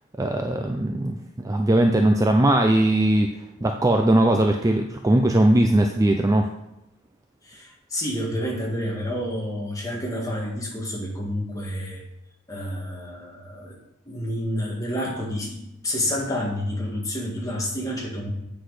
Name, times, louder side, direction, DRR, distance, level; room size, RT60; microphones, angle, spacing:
voice 1, 0.2-6.5, right 1 dB, 15° right, 4 dB, 0.4 m, -20 dB
voice 2, 7.4-12.0 12.5-13.8 14.0-18.3, equal, 15° left, -2 dB, 1.8 m, -29 dB
8.1 x 6.1 x 4.9 m, 0.87 s
head